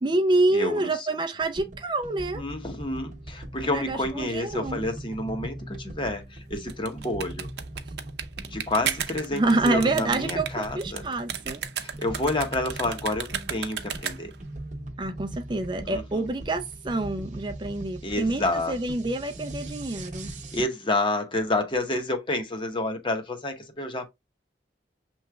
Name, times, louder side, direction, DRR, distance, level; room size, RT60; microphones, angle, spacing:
voice 1, 0.0-2.4 3.7-4.8 9.3-11.6 15.0-20.3, right 2 dB, 25° right, 0.4 m, -27 dB
voice 2, 0.5-1.1 2.4-7.5 8.5-11.0 11.8-14.3 15.8-16.2 18.0-18.7 20.2-24.1, left 2 dB, 30° left, 1.0 m, -29 dB
sound 1, 1.4-20.7, right 1 dB, 45° right, 1.0 m, -40 dB
sound 2, 6.6-14.4, right 8 dB, 70° right, 0.6 m, -34 dB
7.0 x 3.1 x 2.3 m
head